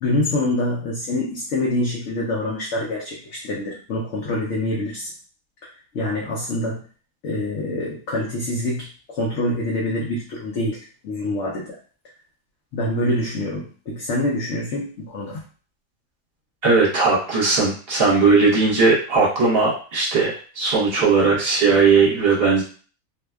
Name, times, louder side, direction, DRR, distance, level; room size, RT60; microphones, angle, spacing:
voice 1, 0.0-5.1 5.9-6.8 7.2-11.8 12.7-15.4, left 1 dB, 65° left, -4 dB, 0.8 m, -25 dB
voice 2, 16.6-22.6, right 4 dB, 45° right, -5 dB, 1.0 m, -18 dB
2.6 x 2.2 x 2.2 m, 0.40 s
omnidirectional pair, 1.5 m